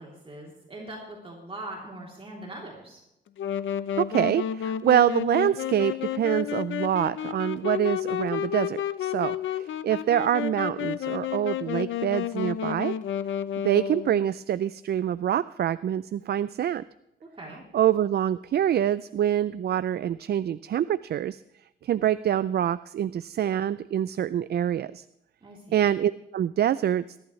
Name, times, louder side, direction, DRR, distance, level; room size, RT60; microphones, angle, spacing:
voice 1, 0.0-3.0 17.4-17.6 25.4-25.8, right 1 dB, 30° right, -2 dB, 3.2 m, -41 dB
Wind instrument woodwind instrument, 3.4-14.3, left 10 dB, 90° left, 0.6 m, -31 dB
voice 2, 4.0-12.9 13.6-16.8 17.7-21.4 21.8-25.0 25.7-27.0, right 10 dB, 60° right, 15 dB, 0.4 m, -25 dB
21.5 x 11.5 x 3.2 m, 0.86 s
cardioid pair, 120°, 19 cm